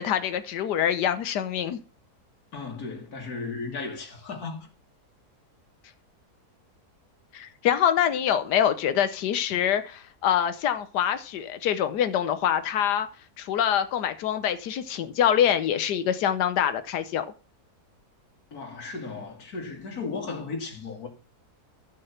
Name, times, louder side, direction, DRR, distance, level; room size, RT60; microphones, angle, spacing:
voice 1, 0.0-1.8 7.3-13.1 13.4-17.3, left 9 dB, 90° left, 1.4 m, -25 dB
voice 2, 2.5-4.7 18.5-21.1, left 4 dB, 65° left, 2.7 m, -35 dB
12.5 x 6.6 x 5.8 m
omnidirectional pair, 1.7 m